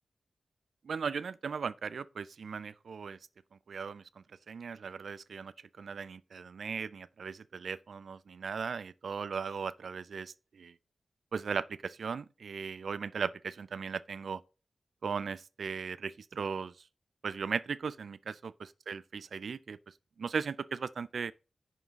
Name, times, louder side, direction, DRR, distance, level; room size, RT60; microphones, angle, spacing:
voice 1, 0.8-3.2 3.7-10.7 11.3-14.4 15.0-16.7 17.2-18.5 18.9-19.8 20.2-21.3, right 5 dB, 80° right, 0.3 m, -37 dB
5.7 x 3.5 x 5.4 m
cardioid pair, 45°, 0 cm